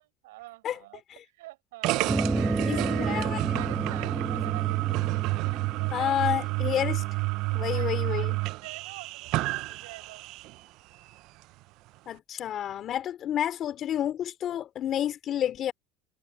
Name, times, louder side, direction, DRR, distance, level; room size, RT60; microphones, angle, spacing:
voice 1, 0.0-3.1 3.5-6.2 7.7-10.2, right 19 dB, 85° right, 7.4 m, -47 dB
sound 1, 1.8-10.6, right 21 dB, 65° right, 0.4 m, -30 dB
sound 2, 2.1-7.0, right 3 dB, 10° right, 1.1 m, -31 dB
voice 2, 2.6-3.7 5.9-7.0 7.5-8.4 12.1-15.7, left 10 dB, 45° left, 2.9 m, -30 dB
supercardioid pair, 105°, 0 cm